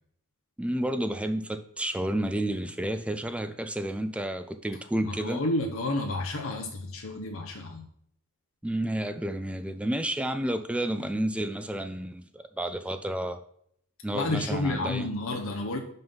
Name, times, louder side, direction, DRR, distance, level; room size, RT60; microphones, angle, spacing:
voice 1, 0.6-5.4 8.6-13.4 14.0-15.1, right 1 dB, 5° right, 9 dB, 0.3 m, -31 dB
voice 2, 5.0-7.9 14.1-15.8, left 2 dB, 65° left, 3 dB, 0.8 m, -30 dB
5.5 x 5.4 x 5.6 m, 0.68 s
head